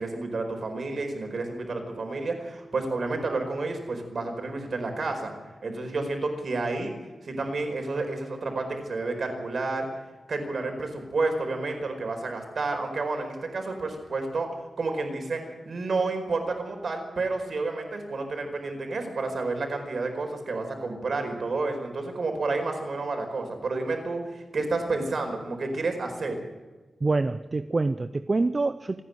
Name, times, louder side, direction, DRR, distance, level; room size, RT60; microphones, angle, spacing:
voice 1, 0.0-5.3 5.6-6.9 7.2-9.9 10.3-14.5 14.8-26.4, right 3 dB, 55° right, 5 dB, 4.8 m, -30 dB
voice 2, 27.0-29.0, right 3 dB, 30° right, 11 dB, 0.6 m, -26 dB
28.0 x 10.0 x 9.5 m, 1.3 s
wide cardioid pair, 130°, 0 cm